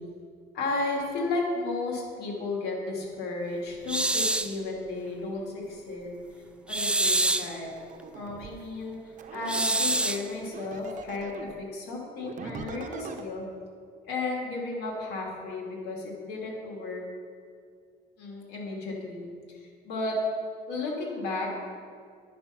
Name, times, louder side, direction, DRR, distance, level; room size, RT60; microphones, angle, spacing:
voice 1, 0.5-6.2 6.7-7.7 8.1-9.0 9.3-13.4 14.1-17.0 18.2-20.1 20.7-21.5, left 3 dB, 75° left, -2 dB, 2.5 m, -33 dB
sound 1, 3.9-4.6 6.7-7.6 9.5-10.3, right 2 dB, 5° right, 0.4 m, -26 dB
sound 2, 7.6-8.5 9.2-11.6 12.2-13.2, right 5 dB, 50° right, 0.8 m, -41 dB
11.0 x 6.7 x 5.8 m, 2.2 s
cardioid pair, 110°, 17 cm